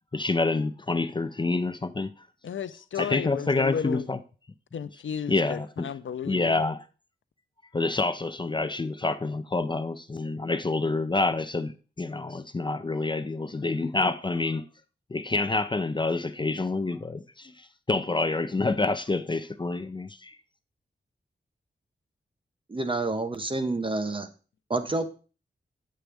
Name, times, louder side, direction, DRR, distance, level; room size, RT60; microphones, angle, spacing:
voice 1, 0.1-2.1 3.0-4.2 5.3-5.9 6.3-6.8 7.7-14.6 15.1-17.5 17.9-20.4, left 3 dB, 25° left, 0.4 m, -27 dB
voice 2, 2.4-4.1 4.7-6.6, left 8 dB, 85° left, 0.5 m, -33 dB
voice 3, 22.7-24.3 24.7-25.1, right 2 dB, 25° right, 0.9 m, -28 dB
8.1 x 7.6 x 3.4 m
wide cardioid pair, 125°, 19 cm